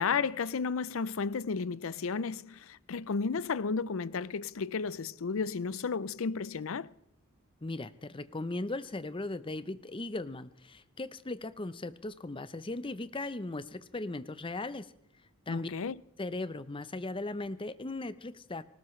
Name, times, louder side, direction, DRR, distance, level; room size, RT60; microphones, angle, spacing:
voice 1, 0.0-6.9 15.5-16.0, left 5 dB, 65° left, 0.5 m, -33 dB
voice 2, 7.6-14.9 15.5-15.7 16.2-18.6, left 2 dB, 25° left, 0.7 m, -38 dB
19.5 x 19.0 x 3.2 m
head